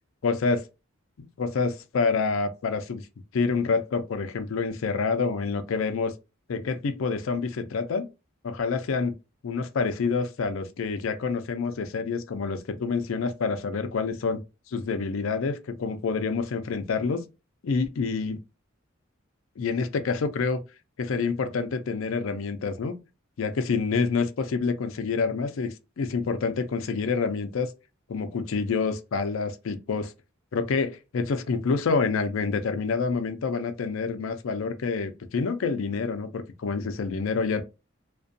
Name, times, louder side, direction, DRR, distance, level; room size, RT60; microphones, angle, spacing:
voice 1, 0.2-0.6 1.4-3.0 3.3-6.1 6.5-8.1 8.4-9.2 9.4-14.4 14.7-17.2 17.6-18.4 19.6-20.6 21.0-23.0 23.4-27.7 28.1-30.1 30.5-37.6, left 4 dB, 80° left, 0.4 m, -27 dB
2.4 x 2.2 x 2.6 m
head